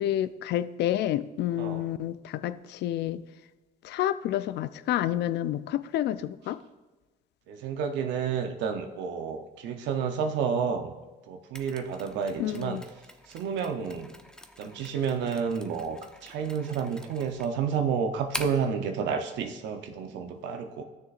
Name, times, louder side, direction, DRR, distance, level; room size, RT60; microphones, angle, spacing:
voice 1, 0.0-3.2 3.8-6.6 12.4-12.8, left 12 dB, 70° left, 15 dB, 0.4 m, -29 dB
voice 2, 7.5-10.9 11.3-12.8 13.3-14.1 14.6-20.8, right 6 dB, 80° right, 5 dB, 0.7 m, -30 dB
Mechanisms, 11.5-18.7, equal, 5° left, 0.7 m, -44 dB
13.0 x 6.5 x 2.5 m, 1.2 s
supercardioid pair, 75°, 19 cm